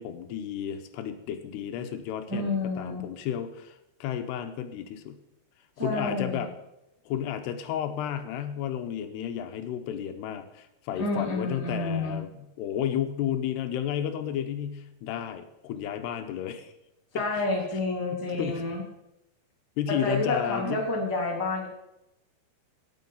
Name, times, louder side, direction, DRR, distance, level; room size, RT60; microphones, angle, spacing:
voice 1, 0.0-5.2 5.8-6.5 7.1-16.7 17.1-17.4 18.1-18.6 19.8-20.8, left 10 dB, 80° left, 8 dB, 2.9 m, -32 dB
voice 2, 2.3-3.0 5.8-6.4 11.0-12.2 17.1-18.8 19.9-21.7, left 2 dB, 10° right, -2 dB, 1.3 m, -29 dB
17.0 x 7.5 x 5.5 m, 0.88 s
omnidirectional pair, 4.8 m